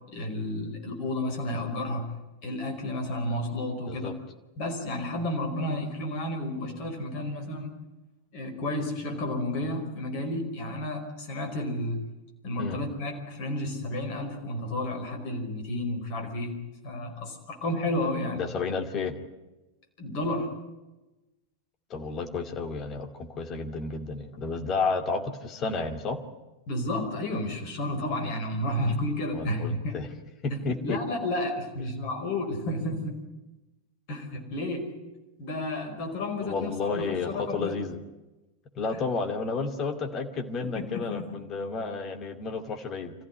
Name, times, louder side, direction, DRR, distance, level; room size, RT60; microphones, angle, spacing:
voice 1, 0.1-2.1 2.4-4.1 4.6-7.7 8.3-12.0 12.4-16.6 16.8-18.4 20.0-20.5 26.7-30.0 30.5-33.2 34.1-34.9 35.4-37.8 38.9-39.0 40.6-41.3, left 1 dB, 45° left, 5 dB, 4.9 m, -31 dB
voice 2, 18.3-19.1 21.9-26.2 29.3-30.1 30.4-31.0 36.4-38.0 38.8-43.1, left 4 dB, 30° left, 6 dB, 2.5 m, -31 dB
26.0 x 15.0 x 9.9 m, 1.1 s
figure-of-eight pair, 90°, 0 cm